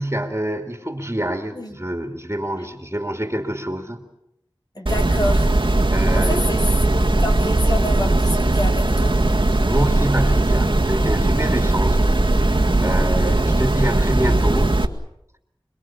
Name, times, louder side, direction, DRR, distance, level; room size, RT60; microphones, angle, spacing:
voice 1, 0.0-4.0 5.9-6.4 9.7-14.9, right 1 dB, 25° right, 4 dB, 2.6 m, -27 dB
voice 2, 4.7-5.5 6.1-6.6 6.9-9.2 13.2-13.4, left 1 dB, 45° left, 2 dB, 3.2 m, -28 dB
sound 1, 4.9-14.9, right 2 dB, 65° right, 2.0 m, -18 dB
28.0 x 21.0 x 7.3 m, 0.82 s
wide cardioid pair, 40°, 9 cm